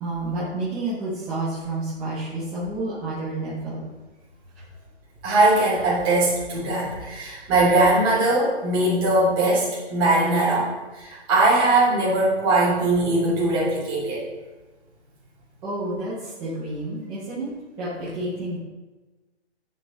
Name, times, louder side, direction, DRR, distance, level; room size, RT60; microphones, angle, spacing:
voice 1, 0.0-3.9 15.6-17.5 17.8-18.6, right 2 dB, 5° right, -12 dB, 0.7 m, -30 dB
voice 2, 5.2-14.2, right 2 dB, 20° right, -7 dB, 2.9 m, -20 dB
9.8 x 5.7 x 4.1 m, 1.2 s
hypercardioid pair, 165°, 35 cm